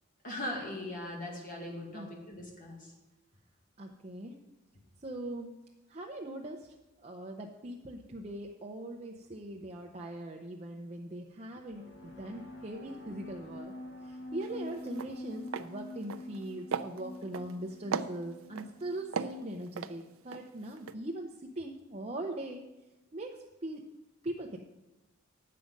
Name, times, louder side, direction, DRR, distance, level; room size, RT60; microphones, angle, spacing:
voice 1, 0.2-2.9, left 1 dB, 40° left, 0 dB, 1.6 m, -40 dB
voice 2, 3.8-4.4 5.0-5.6 5.9-6.7 7.0-13.7 14.0-22.6 23.1-23.8 24.2-24.6, right 1 dB, 30° right, 1 dB, 0.7 m, -41 dB
sound 1, 11.7-19.2, left 1 dB, 70° left, 2.0 m, -46 dB
sound 2, 14.4-14.6 14.9-15.1 15.5-15.7 16.0-16.4 16.7-17.5 17.9-18.7 19.1-20.4 20.8-20.9, right 6 dB, 80° right, 0.5 m, -36 dB
10.5 x 7.6 x 5.2 m, 1.0 s
head